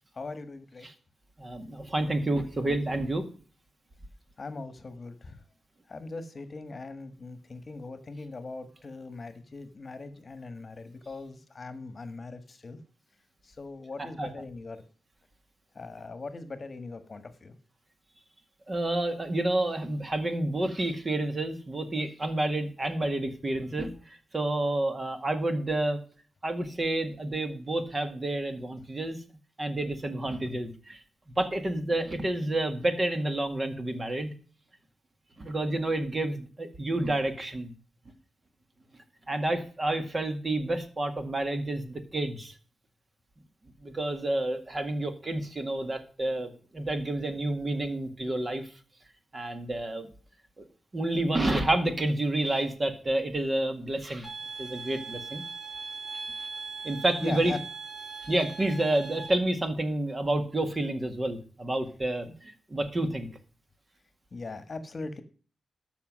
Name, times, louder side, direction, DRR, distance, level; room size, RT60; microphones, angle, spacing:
voice 1, 0.1-0.9 4.4-5.4 5.9-12.8 13.4-14.8 15.7-17.5 57.2-57.6 62.3-62.4 64.3-65.2, left 3 dB, 40° left, 10 dB, 1.4 m, -40 dB
voice 2, 1.4-3.3 14.2-14.3 18.7-23.9 24.3-26.0 26.4-29.2 29.6-31.0 31.4-34.3 35.4-37.7 39.3-42.5 43.8-48.7 49.3-50.1 50.6-50.7 50.9-54.3 54.6-55.4 56.8-57.6 58.2-63.3, right 1 dB, 30° right, 7 dB, 1.9 m, -29 dB
sound 1, 54.2-59.3, right 4 dB, 10° right, 4.7 m, -40 dB
13.0 x 6.0 x 6.2 m, 0.39 s
cardioid pair, 90°, 0 cm